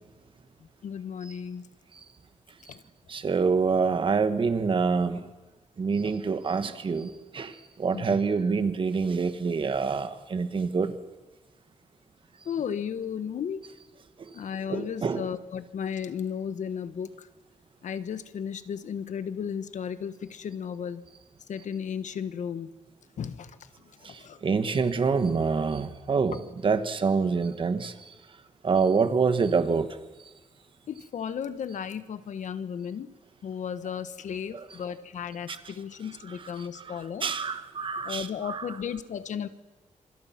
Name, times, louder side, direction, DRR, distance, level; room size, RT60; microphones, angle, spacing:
voice 1, 0.8-1.7 2.7-2.8 7.9-8.1 12.4-13.6 14.3-17.3 17.8-21.0 21.5-22.7 23.2-23.5 24.0-24.4 30.9-33.1 33.4-37.3 38.0-39.5, left 7 dB, 80° left, 12 dB, 1.4 m, -34 dB
voice 2, 3.1-5.2 5.8-7.1 7.3-7.5 7.8-10.9 14.7-15.2 24.4-27.9 28.6-29.9 37.2-38.6, right 5 dB, 45° right, 10 dB, 1.6 m, -26 dB
26.0 x 25.5 x 6.0 m, 1.2 s
wide cardioid pair, 145°, 13 cm